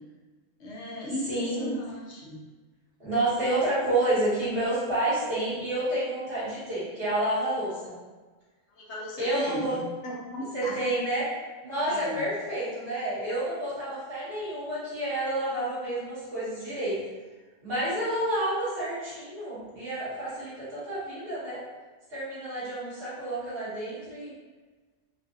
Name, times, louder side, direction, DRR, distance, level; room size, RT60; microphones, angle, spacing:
voice 1, 0.6-2.4 8.7-10.8 11.9-12.3, equal, 80° left, -3 dB, 1.1 m, -36 dB
voice 2, 1.3-1.7 3.0-8.0 9.2-9.8 10.5-11.3 11.6-17.0 17.6-21.6 22.1-24.3, right 1 dB, 60° right, -12 dB, 1.9 m, -29 dB
3.9 x 2.5 x 2.6 m, 1.3 s
omnidirectional pair, 1.1 m